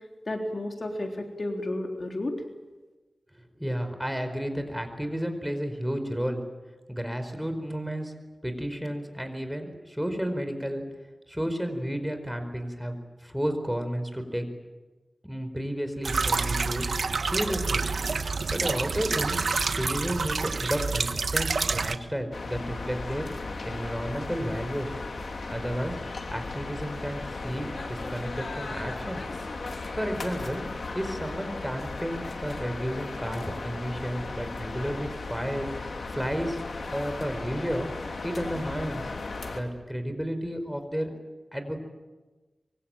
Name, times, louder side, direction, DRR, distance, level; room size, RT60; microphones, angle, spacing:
voice 1, 0.3-2.4, left 1 dB, 50° left, 2 dB, 3.7 m, -32 dB
voice 2, 3.6-6.4 6.9-8.1 8.4-10.8 11.3-14.4 15.2-16.9 17.2-17.8 18.5-19.4 19.7-23.3 23.6-24.9 25.5-26.0 26.3-29.2 30.0-30.6 30.9-36.6 36.9-37.9 38.2-39.1 39.5-41.1 41.5-41.8, equal, 5° right, 7 dB, 4.6 m, -32 dB
sound 1, 16.0-22.0, right 4 dB, 85° right, 1.4 m, -28 dB
sound 2, 22.3-39.6, left 3 dB, 85° left, 3.3 m, -36 dB
25.0 x 24.0 x 9.0 m, 1.2 s
wide cardioid pair, 65°, 0 cm